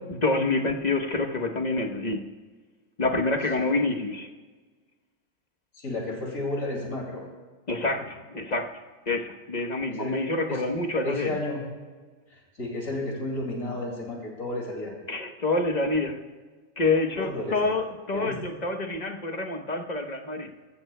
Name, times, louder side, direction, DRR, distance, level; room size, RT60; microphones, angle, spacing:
voice 1, 0.1-2.3 3.0-4.3 7.7-8.7 9.1-11.4 15.1-16.2 16.8-20.5, left 2 dB, 35° left, 4 dB, 1.1 m, -27 dB
voice 2, 5.7-7.2 7.9-8.0 9.9-10.2 10.5-10.7 11.0-11.6 12.3-14.9 17.2-17.7 18.1-18.5, left 1 dB, 85° left, -1 dB, 2.8 m, -32 dB
23.0 x 14.5 x 2.2 m, 1.4 s
omnidirectional pair, 1.4 m